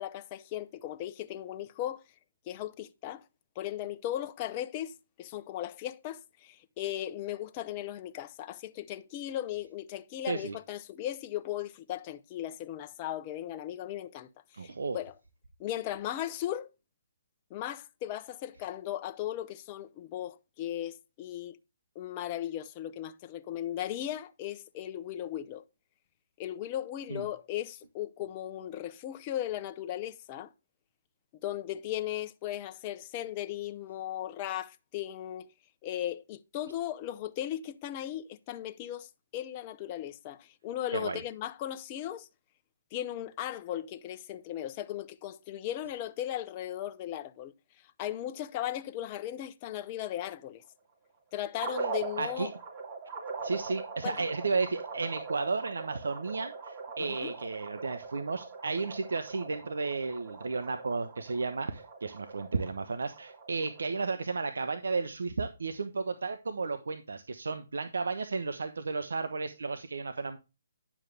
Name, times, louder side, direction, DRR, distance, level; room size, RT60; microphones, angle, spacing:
voice 1, 0.0-2.0 2.5-3.2 3.6-4.9 5.2-14.3 14.6-15.1 15.6-16.7 17.5-21.6 21.9-25.6 26.4-30.5 31.4-35.5 35.8-42.3 42.9-47.5 48.0-50.6 51.3-52.5 54.0-54.3 57.0-57.3, left 12 dB, 30° left, 0.7 m, -37 dB
voice 2, 14.6-15.0 27.1-27.2 40.9-41.2 52.2-52.5 53.4-70.4, right 4 dB, 80° right, 1.1 m, -33 dB
sound 1, 51.6-63.8, right 4 dB, 25° right, 2.7 m, -41 dB
10.5 x 7.4 x 3.4 m
hypercardioid pair, 150°, 0 cm